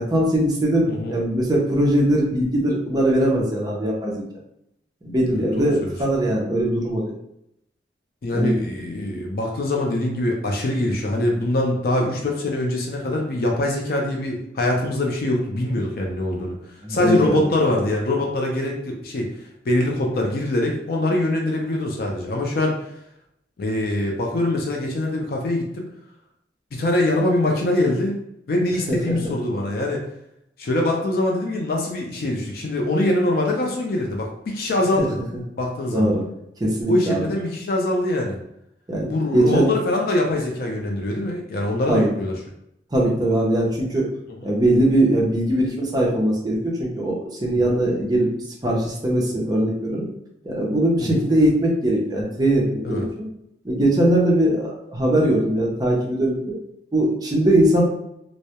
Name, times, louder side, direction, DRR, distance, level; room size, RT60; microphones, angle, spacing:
voice 1, 0.0-4.2 5.0-7.1 8.3-8.5 16.8-17.4 28.9-29.3 35.0-35.1 35.9-36.2 36.6-37.2 38.9-39.7 41.9-42.1 42.9-44.1 44.4-48.3 48.6-50.1 50.4-53.0 53.6-56.5 56.9-57.8, right 1 dB, 20° right, -2 dB, 0.5 m, -21 dB
voice 2, 0.9-1.2 5.3-5.9 8.2-16.6 16.9-19.3 19.7-22.8 23.6-25.8 26.7-28.2 28.5-30.0 30.6-35.2 35.6-36.1 36.9-38.4 39.1-42.4 47.7-47.8 51.0-51.2 52.8-53.1, left 1 dB, 55° left, 0 dB, 0.4 m, -23 dB
2.2 x 2.0 x 2.8 m, 0.79 s
head